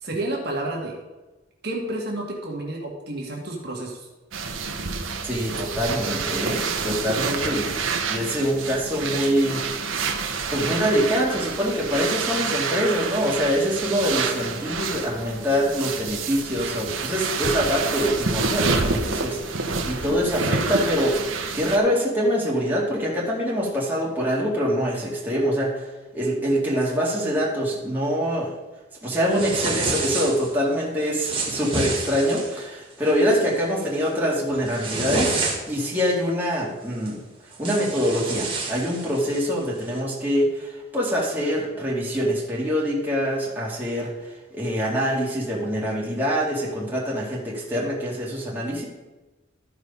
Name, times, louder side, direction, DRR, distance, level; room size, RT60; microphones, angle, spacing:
voice 1, 0.0-1.0 1.6-4.1, right 1 dB, 55° right, -2 dB, 1.9 m, -30 dB
sound 1, 4.3-21.8, right 4 dB, 90° right, 1.0 m, -28 dB
voice 2, 5.2-9.6 10.5-25.9 26.1-28.5 29.0-35.4 35.7-37.2 37.6-48.8, equal, 10° right, -5 dB, 2.1 m, -24 dB
sound 2, 29.3-30.5 31.1-32.6 33.1-33.4 33.8-34.1 34.5-35.9 37.1-37.2 37.5-39.5, right 3 dB, 25° right, 1.7 m, -29 dB
13.0 x 4.8 x 5.3 m, 1.1 s
head